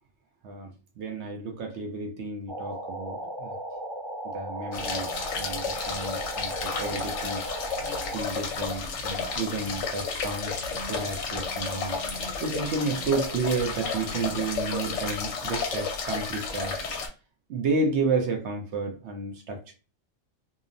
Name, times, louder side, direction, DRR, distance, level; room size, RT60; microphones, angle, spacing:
voice 1, 1.0-3.6 4.3-5.1 5.4-12.0 12.4-16.8 17.5-19.7, right 3 dB, 65° right, 2 dB, 0.8 m, -31 dB
sound 1, 2.5-8.2, right 1 dB, 45° right, 0.3 m, -36 dB
sound 2, 4.7-17.1, left 4 dB, 65° left, 0.9 m, -32 dB
2.7 x 2.0 x 2.5 m, 0.33 s
omnidirectional pair, 1.4 m